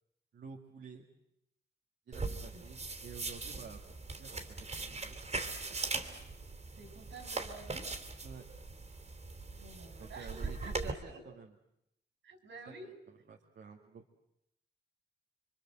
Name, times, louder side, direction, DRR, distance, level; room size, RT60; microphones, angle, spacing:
voice 1, 0.3-1.0 2.1-5.4 8.2-8.5 10.0-11.5 12.7-12.8 13.3-14.0, right 6 dB, 65° right, 1 dB, 2.5 m, -51 dB
sound 1, 2.1-10.9, right 3 dB, 35° right, 3.2 m, -40 dB
voice 2, 2.2-2.7 6.7-7.9 9.5-11.2 12.2-12.9, right 3 dB, 85° right, 6 dB, 6.0 m, -51 dB
28.0 x 24.0 x 7.7 m, 0.79 s
cardioid pair, 105°, 19 cm